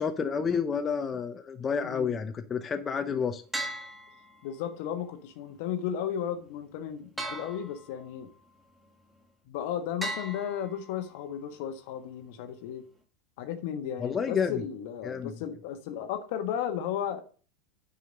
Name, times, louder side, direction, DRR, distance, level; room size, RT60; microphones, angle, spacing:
voice 1, 0.0-3.4 14.0-14.6 15.0-15.4, left 6 dB, 25° left, 0.9 m, -30 dB
voice 2, 1.8-2.2 4.4-8.3 9.5-12.8 13.4-17.2, left 9 dB, 55° left, 1.3 m, -34 dB
sound 1, 3.5-4.8 7.2-8.2 10.0-11.2, right 1 dB, 10° right, 1.7 m, -38 dB
9.5 x 5.6 x 5.3 m
figure-of-eight pair, 85°, 0 cm